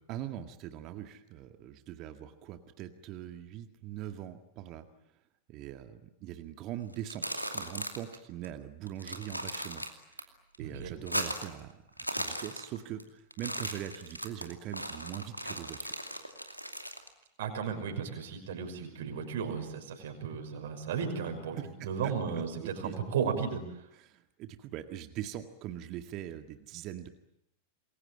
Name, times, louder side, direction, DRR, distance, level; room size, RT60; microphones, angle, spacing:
voice 1, 0.1-4.9 5.5-9.8 10.2-10.3 10.6-11.8 12.1-15.9 21.6-23.0 24.0-27.1, right 11 dB, 40° right, 7 dB, 1.9 m, -42 dB
sound 1, 6.9-8.2 8.4-8.5 8.9-10.2 10.5-11.6 11.9-13.0 13.3-17.1, equal, 90° right, 2.5 m, -37 dB
voice 2, 10.6-10.9 17.4-23.6, right 6 dB, 60° right, 5 dB, 5.8 m, -34 dB
28.0 x 22.0 x 8.9 m, 0.80 s
figure-of-eight pair, 90°, 0 cm